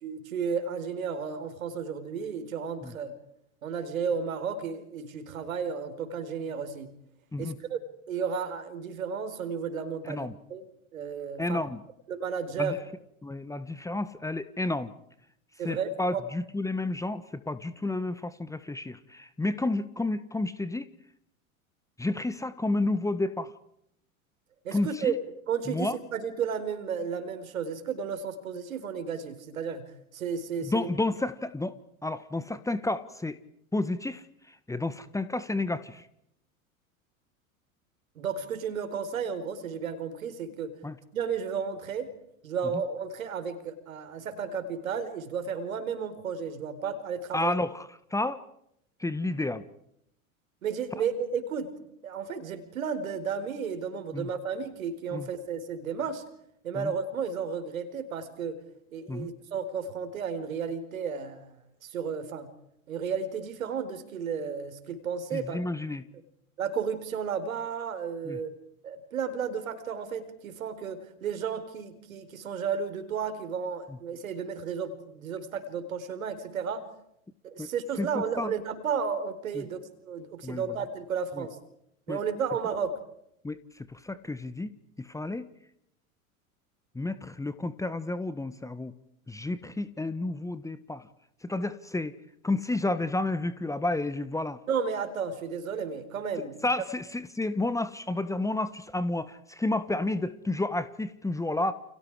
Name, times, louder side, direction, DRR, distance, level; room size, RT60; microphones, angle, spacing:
voice 1, 0.0-3.2 3.6-6.9 7.4-7.8 8.1-10.7 10.9-11.6 12.1-12.8 15.6-16.2 24.6-25.1 25.5-30.9 38.2-40.7 41.1-42.1 42.4-47.6 50.6-51.7 52.0-56.2 56.6-58.6 58.9-61.5 61.8-62.5 62.9-65.6 66.6-68.5 68.8-76.9 77.4-81.6 82.1-83.0 94.7-96.6, right 6 dB, 70° right, 10 dB, 4.6 m, -33 dB
voice 2, 11.4-11.8 12.6-12.8 13.2-14.9 15.6-20.9 22.0-23.5 24.7-25.1 25.7-26.0 30.6-33.4 33.7-36.1 40.8-41.0 47.3-48.4 49.0-49.6 54.1-54.3 55.1-55.3 56.7-56.9 59.1-59.3 65.3-66.1 68.2-68.4 73.9-74.0 77.6-77.7 78.0-78.5 79.5-79.7 80.4-80.6 81.4-81.5 82.1-82.2 83.4-84.7 85.0-85.5 86.9-88.9 89.3-91.1 91.4-92.2 92.4-94.6 96.6-101.7, left 2 dB, 5° left, 14 dB, 1.4 m, -31 dB
30.0 x 29.0 x 4.9 m, 0.75 s
figure-of-eight pair, 85°, 43 cm